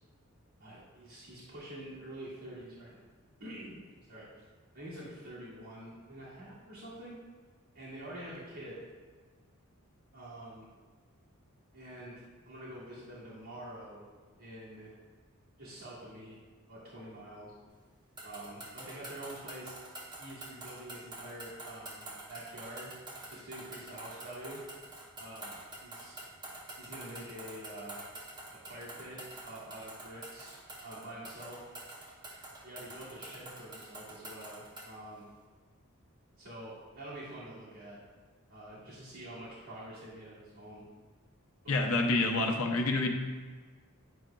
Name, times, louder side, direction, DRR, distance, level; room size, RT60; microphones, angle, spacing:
voice 1, 0.6-3.0 3.4-3.8 4.1-4.3 4.7-7.2 7.7-8.9 10.1-10.7 11.7-14.1 14.4-14.9 15.6-16.4 16.7-17.5 18.2-19.8 20.2-22.9 23.3-24.6 25.2-26.2 26.8-28.0 28.5-31.7 32.6-35.3 36.4-38.0 38.5-40.8 41.6-41.9, right 1 dB, 90° right, -11 dB, 1.8 m, -46 dB
sound 1, 18.2-35.0, right 2 dB, 20° right, 0.6 m, -47 dB
voice 2, 41.7-43.1, left 2 dB, 70° left, 2 dB, 0.7 m, -28 dB
9.2 x 5.0 x 2.3 m, 1.4 s
head